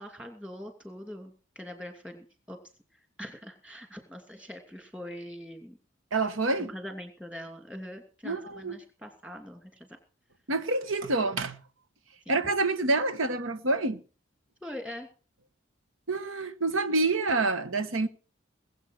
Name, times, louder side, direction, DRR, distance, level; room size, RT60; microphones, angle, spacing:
voice 1, 0.0-2.6 2.9-5.8 6.6-10.0 12.2-12.4 14.6-15.1, equal, 5° right, 2.7 m, -43 dB
voice 2, 6.1-6.7 8.2-8.8 10.5-11.6 12.3-14.0 16.1-18.1, right 3 dB, 85° right, 1.3 m, -27 dB
21.0 x 8.1 x 6.4 m
head